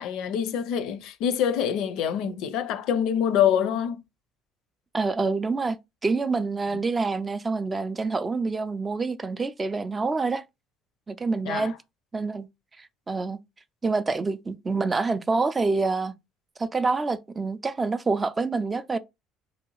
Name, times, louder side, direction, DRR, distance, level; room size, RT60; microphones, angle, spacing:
voice 1, 0.0-4.0 11.4-11.7, left 9 dB, 70° left, 0.5 m, -25 dB
voice 2, 4.9-5.8 6.0-10.4 11.1-11.7 12.1-12.5 12.8-13.4 13.8-16.1 16.6-19.0, right 3 dB, 20° right, 0.3 m, -27 dB
3.3 x 2.7 x 2.9 m
cardioid pair, 130°, 0 cm